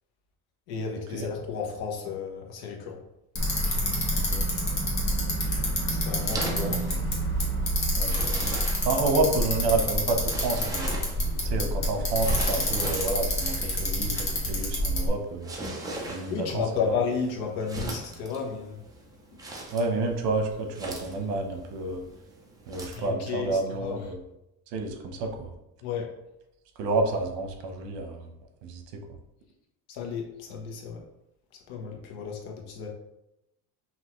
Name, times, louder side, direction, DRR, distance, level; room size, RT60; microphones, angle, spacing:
voice 1, 0.7-3.0 5.9-6.8 16.3-18.8 22.9-23.5 23.8-24.0 25.8-26.1 29.9-31.0 31.7-32.9, left 6 dB, 60° left, 1 dB, 1.1 m, -32 dB
Bicycle, 3.4-15.1, equal, 30° left, 1.2 m, -27 dB
voice 2, 4.1-4.4 6.6-7.1 8.0-8.2 8.8-11.0 11.4-15.5 16.1-16.9 19.7-22.0 22.7-24.2 24.7-25.5 26.8-28.3 28.6-29.0, right 3 dB, 80° right, 4 dB, 1.0 m, -29 dB
sound 1, 5.3-23.1, right 1 dB, 10° right, 0.4 m, -41 dB
5.9 x 2.7 x 3.0 m, 0.86 s
cardioid pair, 165°, 43 cm